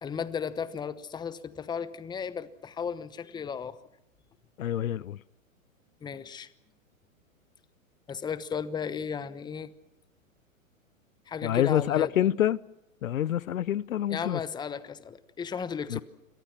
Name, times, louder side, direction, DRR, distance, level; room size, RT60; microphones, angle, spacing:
voice 1, 0.0-3.8 6.0-6.5 8.1-9.7 11.3-12.1 14.1-16.0, left 6 dB, 10° left, 1.0 m, -35 dB
voice 2, 4.6-5.2 11.4-12.6 13.0-14.4 15.9-16.0, left 11 dB, 75° left, 0.9 m, -27 dB
29.0 x 22.5 x 5.9 m
hypercardioid pair, 125°, 41 cm